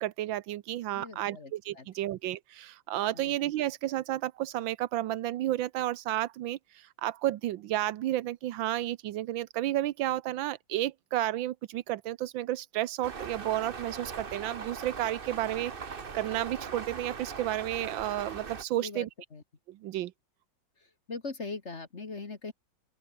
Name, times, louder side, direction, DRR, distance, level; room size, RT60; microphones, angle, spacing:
voice 1, 0.0-19.1 19.7-20.1, right 14 dB, 90° right, 1.5 m, -32 dB
voice 2, 0.9-2.1 3.1-3.4 18.8-19.4 20.8-22.5, left 3 dB, 40° left, 2.1 m, -41 dB
sound 1, 13.0-18.6, right 5 dB, 35° right, 1.3 m, -40 dB
open air
omnidirectional pair, 2.0 m